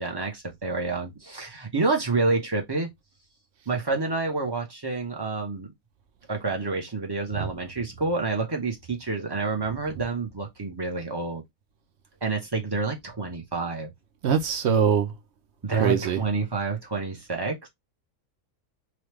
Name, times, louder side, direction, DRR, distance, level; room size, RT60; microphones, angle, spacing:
voice 1, 0.0-2.9 3.7-5.7 6.3-11.4 12.2-13.9 15.6-17.7, right 3 dB, 25° right, 0.6 m, -28 dB
voice 2, 14.2-15.1 15.8-16.2, right 7 dB, 65° right, 0.7 m, -22 dB
3.0 x 2.3 x 3.2 m
omnidirectional pair, 1.5 m